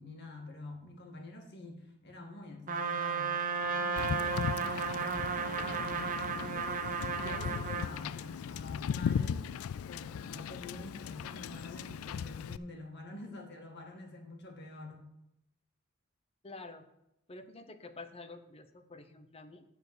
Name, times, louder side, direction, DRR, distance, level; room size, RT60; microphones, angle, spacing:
voice 1, 0.0-6.8 7.1-9.5 9.9-15.1, left 2 dB, 55° left, 2 dB, 1.9 m, -47 dB
Trumpet, 2.7-7.9, right 5 dB, 40° right, 0.8 m, -34 dB
Wind / Boat Water vehicle, 4.0-12.6, left 7 dB, 85° left, 0.3 m, -38 dB
voice 2, 16.4-16.9 17.3-19.6, left 3 dB, 30° left, 8 dB, 0.8 m, -48 dB
10.5 x 4.4 x 7.9 m, 0.86 s
head